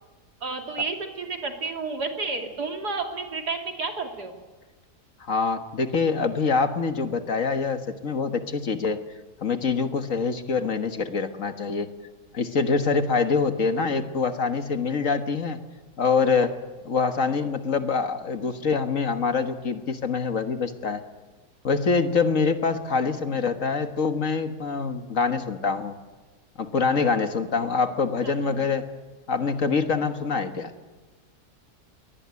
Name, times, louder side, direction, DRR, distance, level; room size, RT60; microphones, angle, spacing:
voice 1, 0.4-4.3 28.2-28.6, right 4 dB, 80° right, 4 dB, 3.3 m, -31 dB
voice 2, 5.2-9.0 9.4-11.9 12.3-15.6 16.0-16.5 16.8-21.0 21.6-25.9 26.6-28.9 29.3-30.7, left 5 dB, 55° left, 8 dB, 1.8 m, -25 dB
22.5 x 18.5 x 9.6 m, 1.3 s
omnidirectional pair, 1.7 m